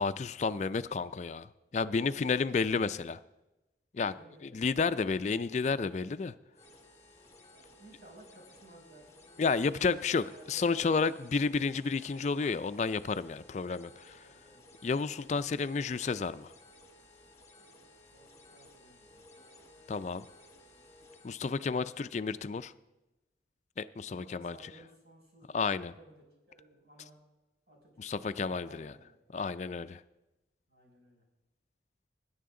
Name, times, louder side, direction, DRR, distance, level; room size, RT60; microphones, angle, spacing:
voice 1, 0.0-1.5 1.7-3.2 3.9-4.1 4.5-6.3 9.4-14.2 14.8-16.5 19.9-20.3 21.2-22.7 23.8-24.5 25.5-25.9 28.0-28.9 29.3-30.0, left 4 dB, 40° left, 13 dB, 0.4 m, -31 dB
voice 2, 4.0-4.7 7.5-10.6 13.5-13.7 14.2-14.6 18.1-19.3 24.1-27.2 27.7-28.1 28.4-29.2 30.7-31.2, right 1 dB, 70° right, -3 dB, 5.8 m, -57 dB
sound 1, 6.5-21.5, left 1 dB, 15° left, 1.3 m, -57 dB
21.0 x 10.5 x 3.8 m, 1.0 s
head